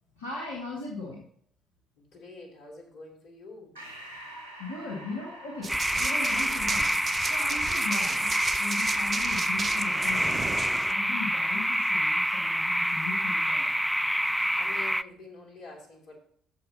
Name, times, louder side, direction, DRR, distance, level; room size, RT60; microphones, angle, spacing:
voice 1, 0.2-1.2 4.6-5.7 6.0-13.8 14.4-14.5, left 3 dB, 85° left, -3 dB, 1.2 m, -38 dB
voice 2, 2.0-3.8 14.6-16.2, left 3 dB, 60° left, -1 dB, 2.8 m, -46 dB
Breathing, 3.8-8.6, right 1 dB, 80° right, 1.5 m, -48 dB
Run, 5.6-10.9, right 4 dB, 35° right, 0.7 m, -35 dB
sound 1, 5.7-15.0, equal, ahead, 0.4 m, -27 dB
9.1 x 6.9 x 4.0 m, 0.63 s
figure-of-eight pair, 50°, 0 cm